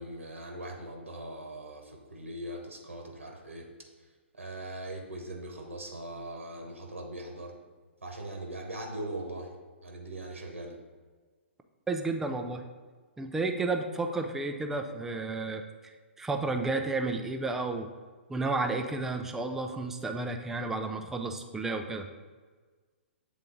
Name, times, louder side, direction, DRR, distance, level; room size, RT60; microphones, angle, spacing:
voice 1, 0.0-3.7 4.0-7.5 8.0-10.8, right 1 dB, 80° right, 1 dB, 1.0 m, -41 dB
voice 2, 11.9-12.6 13.2-15.6 16.2-17.9 18.3-22.1, right 3 dB, 5° right, 4 dB, 0.4 m, -32 dB
7.5 x 3.6 x 3.8 m, 1.4 s
figure-of-eight pair, 120°, 7 cm